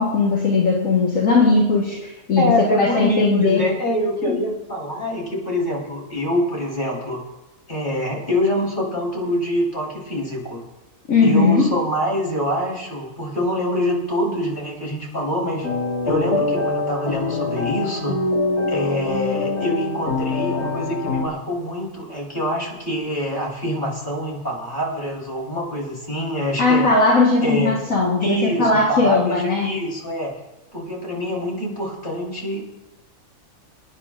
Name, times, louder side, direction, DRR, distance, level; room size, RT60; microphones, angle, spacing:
voice 1, 0.0-3.6 4.3-4.4 11.1-11.7 26.6-29.8, left 3 dB, 60° left, -3 dB, 2.0 m, -18 dB
voice 2, 2.4-7.2 7.7-10.6 11.2-15.7 16.0-18.2 18.7-26.9 27.4-27.8 28.2-30.3 30.7-32.6, equal, 30° left, -4 dB, 4.1 m, -25 dB
sound 1, 15.6-21.3, left 3 dB, 80° left, 2.3 m, -24 dB
27.0 x 9.8 x 2.5 m, 1.0 s
omnidirectional pair, 1.6 m